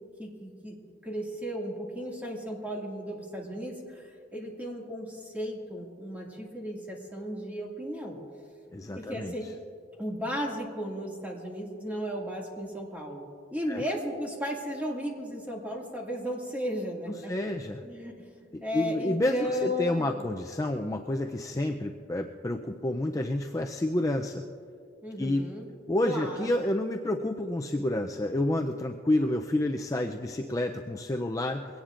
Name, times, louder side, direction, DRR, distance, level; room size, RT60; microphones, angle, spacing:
voice 1, 0.2-0.8 1.0-8.2 8.9-9.4 10.0-17.3 17.8-18.3 18.6-20.3 25.0-25.7 26.0-26.6, equal, 10° right, -2 dB, 2.1 m, -35 dB
voice 2, 8.7-9.3 13.7-13.8 17.3-17.8 18.5-24.4 25.2-25.5 25.9-31.7, left 1 dB, 20° left, 3 dB, 0.4 m, -29 dB
22.5 x 17.5 x 2.5 m, 2.4 s
head